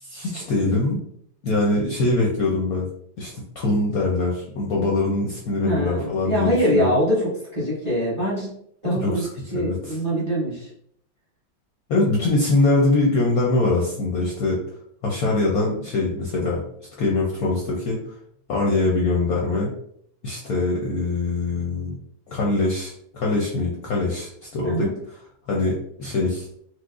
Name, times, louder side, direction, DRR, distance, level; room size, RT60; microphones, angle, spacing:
voice 1, 0.0-1.0 1.4-2.9 3.2-7.0 8.9-9.3 9.5-10.0 11.9-14.6 15.0-16.6 17.0-18.0 18.5-19.7 20.2-22.0 22.3-25.2 25.5-26.5, left 2 dB, 70° left, -3 dB, 0.9 m, -23 dB
voice 2, 5.6-8.5 8.8-9.2 9.5-10.7 24.6-24.9, equal, 25° right, -7 dB, 0.7 m, -23 dB
4.4 x 2.1 x 2.4 m, 0.68 s
omnidirectional pair, 2.1 m